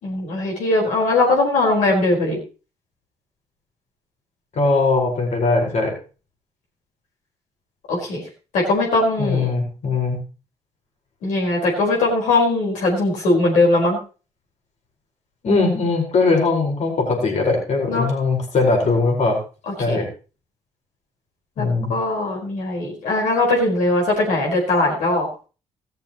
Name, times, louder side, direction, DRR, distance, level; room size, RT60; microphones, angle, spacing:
voice 1, 0.0-2.4 7.9-8.2 8.5-9.5 11.2-14.0 17.9-18.1 19.7-20.0 21.6-25.3, left 2 dB, 80° left, -2 dB, 4.6 m, -20 dB
voice 2, 4.5-6.0 9.2-10.2 15.4-19.4 19.8-20.1 21.6-21.9, left 3 dB, 60° left, 1 dB, 4.8 m, -20 dB
15.0 x 13.0 x 3.0 m, 0.34 s
supercardioid pair, 65°, 13 cm